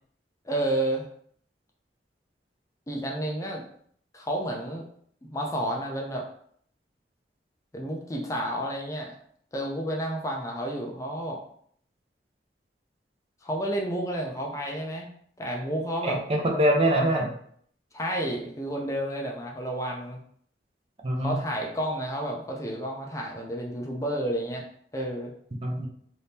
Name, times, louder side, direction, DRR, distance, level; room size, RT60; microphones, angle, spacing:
voice 1, 0.5-1.1 2.9-3.6 4.1-4.9 5.2-6.2 7.7-9.2 9.5-11.4 13.4-15.1 15.4-16.2 17.9-20.2 21.2-24.6 24.9-25.3, right 1 dB, 20° left, -1 dB, 0.5 m, -31 dB
voice 2, 16.0-17.3 21.0-21.4 25.6-25.9, right 1 dB, 35° right, 1 dB, 0.5 m, -24 dB
2.8 x 2.7 x 3.5 m, 0.63 s
head